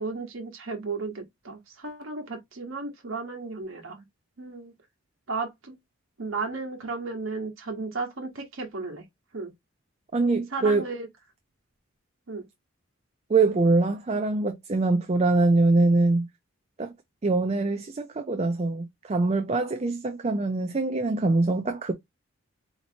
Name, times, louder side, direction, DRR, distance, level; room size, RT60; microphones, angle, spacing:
voice 1, 0.0-4.0 4.4-4.7 5.3-5.7 6.2-9.0 9.3-9.5 10.5-11.1 12.3-12.5, right 3 dB, 70° right, 1.2 m, -34 dB
voice 2, 10.1-10.8 13.3-16.3 16.8-16.9 17.2-21.9, right 3 dB, 30° right, 0.4 m, -23 dB
4.2 x 2.9 x 2.7 m
head